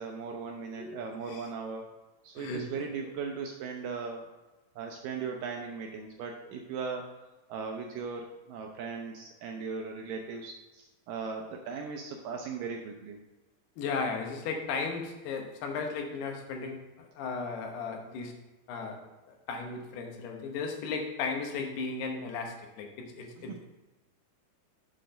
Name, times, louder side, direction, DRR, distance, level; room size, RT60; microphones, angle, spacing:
voice 1, 0.0-1.9 2.2-4.3 4.8-7.2 7.5-13.2 23.4-23.6, right 5 dB, 80° right, 2 dB, 2.0 m, -38 dB
voice 2, 0.7-1.5 2.4-3.1 13.8-18.4 18.7-23.7, left 4 dB, 85° left, 3 dB, 3.2 m, -36 dB
7.6 x 4.4 x 6.3 m, 1.1 s
omnidirectional pair, 4.5 m